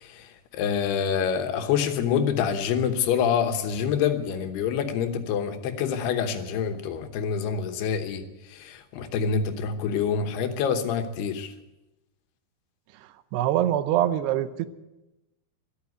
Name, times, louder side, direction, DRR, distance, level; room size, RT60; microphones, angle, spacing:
voice 1, 0.5-8.2 8.5-11.5, left 7 dB, 80° left, 7 dB, 3.1 m, -26 dB
voice 2, 13.3-14.7, right 12 dB, 85° right, 13 dB, 2.8 m, -24 dB
13.0 x 11.5 x 9.4 m, 1.0 s
omnidirectional pair, 4.6 m